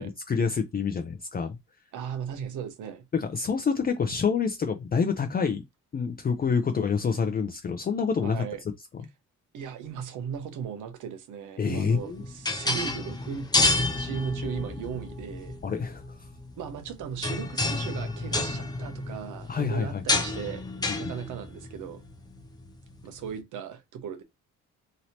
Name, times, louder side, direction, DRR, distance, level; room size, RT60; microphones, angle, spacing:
voice 1, 0.0-1.6 3.1-5.6 5.9-8.4 11.6-12.2 15.6-16.3 19.5-20.0, left 5 dB, 30° left, 0.5 m, -27 dB
voice 2, 1.9-3.0 8.2-8.6 9.5-13.5 14.0-15.6 16.6-20.7 21.0-22.0 23.0-24.2, right 8 dB, 80° right, 0.9 m, -37 dB
sound 1, 11.9-23.3, left 2 dB, 15° left, 0.8 m, -30 dB
3.1 x 2.8 x 2.8 m
cardioid pair, 90°, 30 cm